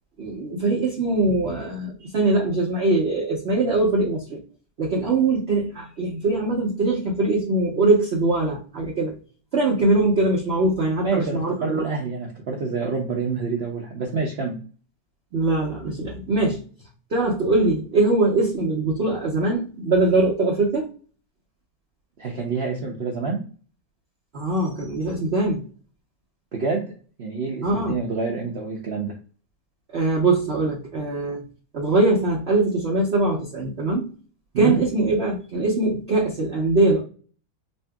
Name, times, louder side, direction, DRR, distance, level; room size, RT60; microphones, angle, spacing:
voice 1, 0.2-4.4 4.8-9.1 9.5-11.8 15.3-16.6 17.1-20.9 24.3-25.6 27.6-28.0 29.9-31.4 31.7-34.1 34.6-37.0, right 2 dB, 50° right, -5 dB, 0.8 m, -22 dB
voice 2, 11.0-14.6 22.2-23.4 26.5-26.9 27.2-29.1 34.5-34.8, right 4 dB, 75° right, -2 dB, 0.5 m, -27 dB
5.1 x 2.7 x 2.2 m, 0.40 s
omnidirectional pair, 2.0 m